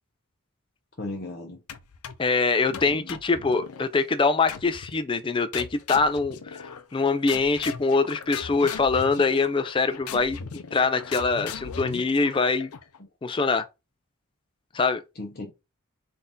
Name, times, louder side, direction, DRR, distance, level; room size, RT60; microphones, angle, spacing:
voice 1, 1.0-1.6 2.7-3.2 13.0-13.1 15.1-15.5, left 2 dB, 45° left, 0.9 m, -37 dB
sound 1, 1.7-2.3 2.7-3.9 4.5-5.0 5.5-7.0 7.3-13.0, left 6 dB, 85° left, 0.5 m, -39 dB
voice 2, 2.2-12.7 13.2-13.6 14.7-15.0, left 4 dB, 25° left, 0.3 m, -24 dB
3.9 x 2.6 x 3.6 m
head